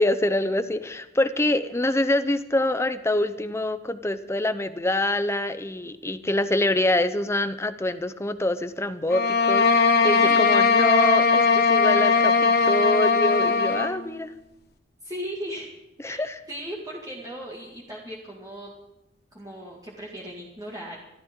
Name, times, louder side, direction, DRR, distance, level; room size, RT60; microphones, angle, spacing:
voice 1, 0.0-14.3 16.0-16.4, left 1 dB, 15° left, 12 dB, 0.7 m, -25 dB
sound 1, 9.1-13.9, left 4 dB, 55° left, 1.4 m, -19 dB
voice 2, 10.2-10.6 15.0-15.7 16.0-18.7 19.3-21.0, equal, 20° right, -4 dB, 2.1 m, -37 dB
25.0 x 13.5 x 3.8 m, 0.93 s
head